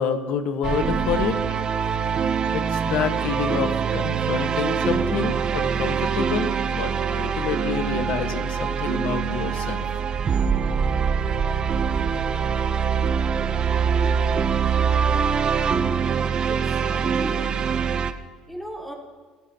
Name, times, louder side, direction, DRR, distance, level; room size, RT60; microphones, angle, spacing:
voice 1, 0.0-1.6 2.5-9.9, left 7 dB, 70° left, 7 dB, 1.5 m, -28 dB
sound 1, 0.6-18.1, right 6 dB, 35° right, 0.9 m, -24 dB
voice 2, 16.5-17.5 18.5-18.9, equal, 5° left, -2 dB, 3.9 m, -38 dB
26.0 x 15.5 x 3.0 m, 1.4 s
cardioid pair, 115°, 2 cm